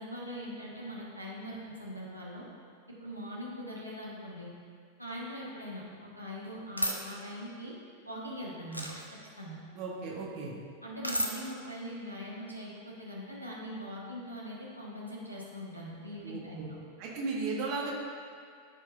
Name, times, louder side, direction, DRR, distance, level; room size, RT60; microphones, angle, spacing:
voice 1, 0.0-2.5 3.0-4.5 5.0-7.7 8.0-9.0 9.4-9.6 10.8-16.8, equal, 90° right, -5 dB, 1.4 m, -41 dB
sound 1, 6.8-7.0 8.7-9.0 11.0-11.3, equal, 90° left, 0.7 m, -31 dB
voice 2, 9.7-10.5 16.2-16.7 17.0-17.9, right 4 dB, 45° right, -3 dB, 1.3 m, -35 dB
13.0 x 4.7 x 2.6 m, 2.2 s
figure-of-eight pair, 90°, 0 cm